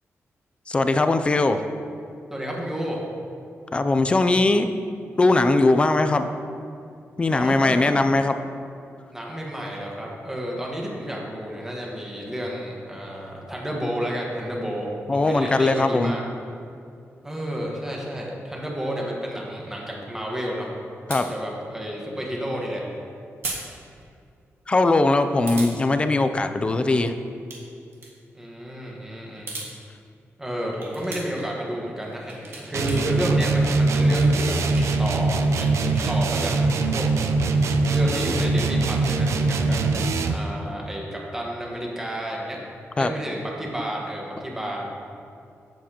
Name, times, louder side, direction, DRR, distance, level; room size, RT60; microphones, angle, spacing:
voice 1, 0.7-1.6 3.7-4.7 5.2-6.3 7.2-8.3 15.1-16.1 21.1-21.3 24.7-27.1 43.0-43.1, left 2 dB, 20° left, 9 dB, 0.4 m, -20 dB
voice 2, 2.3-3.0 7.3-8.0 9.1-16.2 17.2-20.7 21.3-22.8 28.3-29.5 30.4-34.5 35.0-36.5 36.9-37.1 37.8-39.8 40.3-42.6 43.0-44.9, equal, 10° right, -2 dB, 1.4 m, -31 dB
sound 1, 21.1-21.3 23.4-23.6 24.0-24.1 25.5-25.7 27.3-27.6 27.9-28.1 29.3-29.7 30.7-31.5 32.0-33.1 33.4-34.9 35.3-36.8, right 3 dB, 55° right, 1.7 m, -37 dB
sound 2, 32.7-40.5, right 3 dB, 75° right, 0.6 m, -22 dB
14.5 x 7.4 x 3.0 m, 2.5 s
wide cardioid pair, 170°, 5 cm